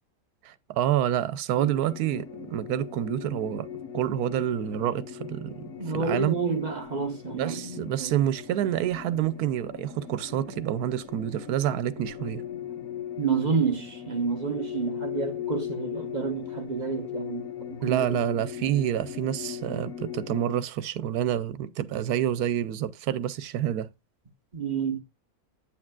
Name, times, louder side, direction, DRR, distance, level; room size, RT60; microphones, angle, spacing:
voice 1, 0.4-3.7 3.9-6.3 7.3-12.4 17.8-23.9, right 11 dB, 90° right, 1.2 m, -28 dB
sound 1, 1.6-20.6, left 9 dB, 75° left, 1.6 m, -39 dB
voice 2, 5.8-8.1 13.2-18.2 24.5-25.0, right 5 dB, 30° right, 1.1 m, -29 dB
8.5 x 8.5 x 2.3 m
omnidirectional pair, 1.6 m